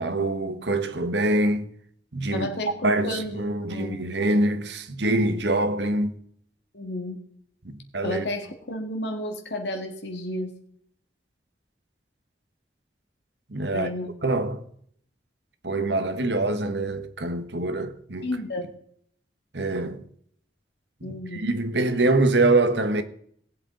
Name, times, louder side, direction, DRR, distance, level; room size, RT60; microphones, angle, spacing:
voice 1, 0.0-1.7 2.1-2.5 2.8-6.2 7.6-8.2 13.5-13.9 14.2-14.6 15.6-18.3 19.5-20.0 21.1-23.0, right 2 dB, 80° right, 1.3 m, -24 dB
voice 2, 2.3-4.2 6.7-7.2 8.0-10.5 13.7-14.3 18.2-18.7 21.0-21.5, left 1 dB, 80° left, 2.0 m, -32 dB
18.0 x 8.1 x 3.9 m
head